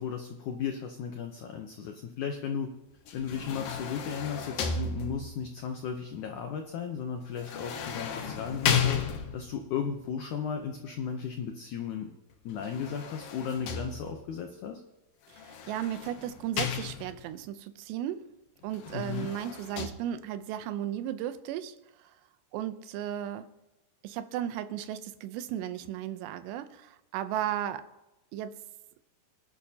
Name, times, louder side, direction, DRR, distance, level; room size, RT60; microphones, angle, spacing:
voice 1, 0.0-2.7 3.1-12.1 12.4-14.8 18.9-19.3, left 7 dB, 90° left, 4 dB, 1.7 m, -35 dB
sound 1, 3.1-5.5 7.4-9.6 12.5-14.4 15.4-17.3 18.7-19.9, left 6 dB, 65° left, 2.5 m, -34 dB
voice 2, 15.3-18.3 18.6-22.1 22.5-23.5 24.0-27.9 28.3-28.6, right 11 dB, 90° right, 11 dB, 2.9 m, -35 dB
24.5 x 11.0 x 2.9 m, 0.99 s
omnidirectional pair, 4.8 m